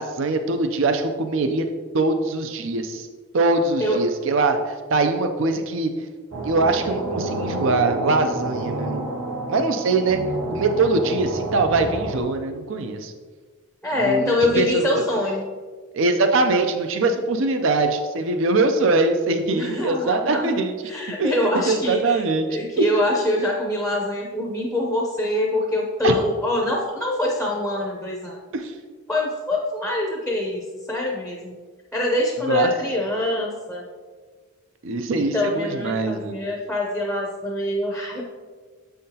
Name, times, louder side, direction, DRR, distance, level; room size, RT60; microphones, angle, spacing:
voice 1, 0.0-1.7 1.9-3.1 3.3-5.9 6.4-9.0 9.5-10.2 10.5-13.1 14.0-15.0 15.9-20.7 21.2-21.3 21.7-22.5 22.8-22.9 26.0-26.1 28.5-28.7 32.5-32.7 34.8-36.4, right 3 dB, 60° right, 7 dB, 0.5 m, -22 dB
sound 1, 6.3-12.2, right 2 dB, 90° right, 1.9 m, -29 dB
voice 2, 13.8-15.5 19.5-28.4 29.1-31.6 31.9-33.9 35.1-38.2, left 1 dB, 5° left, -1 dB, 0.6 m, -24 dB
7.6 x 5.7 x 2.8 m, 1.5 s
head